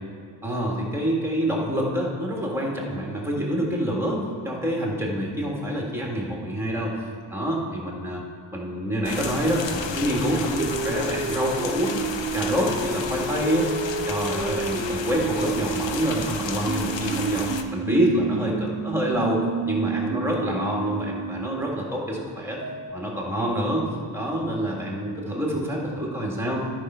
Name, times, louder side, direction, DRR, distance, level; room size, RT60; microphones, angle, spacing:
voice 1, 0.4-6.9 7.3-8.2 8.5-11.9 12.3-13.7 14.1-22.6 22.9-23.8 24.1-26.6, equal, 5° right, -2 dB, 1.6 m, -26 dB
sound 1, 9.0-17.6, left 5 dB, 80° left, 0.7 m, -33 dB
sound 2, 10.6-16.0 16.7-21.6 22.6-22.9, right 5 dB, 30° right, 0.4 m, -30 dB
13.0 x 4.5 x 5.5 m, 2.2 s
wide cardioid pair, 145°, 44 cm